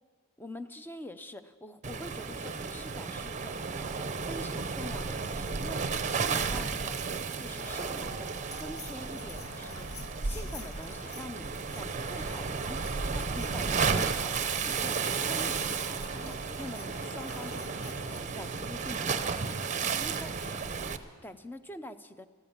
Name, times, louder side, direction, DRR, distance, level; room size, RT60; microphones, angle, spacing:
voice 1, 0.4-7.0 7.4-19.6 20.0-20.6 21.0-22.3, left 1 dB, 10° left, 11 dB, 0.5 m, -45 dB
Waves surf, 1.8-21.0, right 5 dB, 35° right, 0.6 m, -33 dB
sound 1, 7.6-18.2, left 1 dB, 85° left, 1.7 m, -46 dB
14.0 x 13.5 x 7.2 m, 1.5 s
head